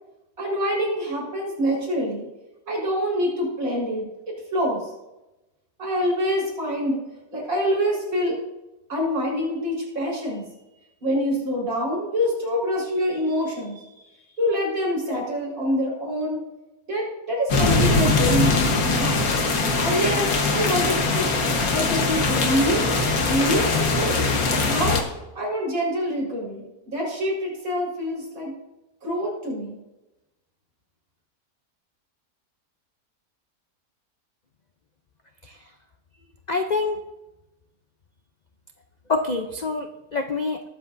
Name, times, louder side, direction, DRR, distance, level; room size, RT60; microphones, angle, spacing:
voice 1, 0.4-2.3 2.7-4.9 5.8-7.0 7.3-8.4 8.9-10.5 11.0-16.4 16.9-19.3 19.7-21.3 21.7-22.9 23.2-24.2 24.7-25.0 25.3-28.5 29.0-29.8, equal, 65° right, -5 dB, 4.8 m, -26 dB
sound 1, 17.5-25.0, left 3 dB, 70° left, 1.7 m, -21 dB
voice 2, 36.5-37.0 39.1-40.7, left 3 dB, 55° left, 5 dB, 0.5 m, -26 dB
20.0 x 7.5 x 2.6 m, 0.98 s
omnidirectional pair, 1.6 m